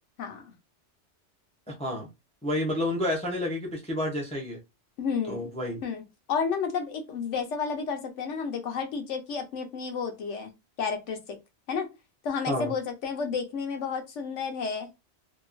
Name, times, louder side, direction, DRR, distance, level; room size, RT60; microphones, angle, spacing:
voice 1, 0.2-0.5 5.0-5.5 5.8-6.0 6.3-10.5 10.8-11.4 11.7-11.9 12.2-14.9, left 6 dB, 85° left, 5 dB, 1.1 m, -31 dB
voice 2, 1.7-2.1 2.4-4.6 5.3-5.8 12.5-12.7, left 1 dB, 10° left, 0 dB, 0.4 m, -30 dB
2.9 x 2.2 x 2.5 m, 0.24 s
omnidirectional pair, 1.2 m